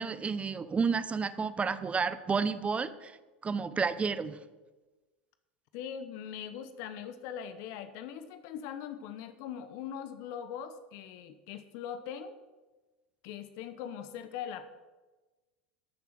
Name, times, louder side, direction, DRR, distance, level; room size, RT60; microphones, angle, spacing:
voice 1, 0.0-3.2 3.4-4.4, right 5 dB, 20° right, 14 dB, 0.8 m, -31 dB
voice 2, 5.7-12.4 13.2-14.7, left 8 dB, 60° left, 11 dB, 1.0 m, -41 dB
13.5 x 7.0 x 6.5 m, 1.2 s
hypercardioid pair, 95°, 6 cm